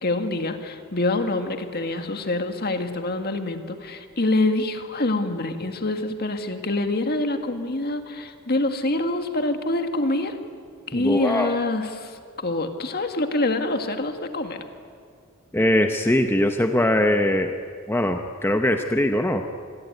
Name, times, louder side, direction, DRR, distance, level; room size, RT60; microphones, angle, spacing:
voice 1, 0.0-10.4 10.9-14.6, left 2 dB, 45° left, 6 dB, 1.9 m, -26 dB
voice 2, 10.9-11.5 15.5-17.5 17.9-19.4, left 1 dB, 10° left, 5 dB, 0.9 m, -21 dB
27.0 x 21.5 x 9.4 m, 2.2 s
head